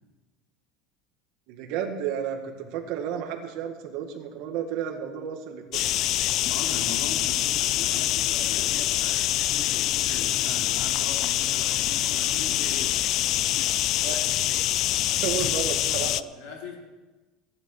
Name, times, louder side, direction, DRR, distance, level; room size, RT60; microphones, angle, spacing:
voice 1, 1.5-5.9 14.0-14.2 15.1-16.3, right 8 dB, 60° right, 4 dB, 1.9 m, -32 dB
sound 1, 5.7-16.2, left 14 dB, 45° left, 0.3 m, -25 dB
voice 2, 6.5-13.0 15.2-15.5 15.9-16.1 16.3-16.8, left 4 dB, 80° left, 0 dB, 3.7 m, -40 dB
15.5 x 11.0 x 4.9 m, 1.2 s
cardioid pair, 165°, 0 cm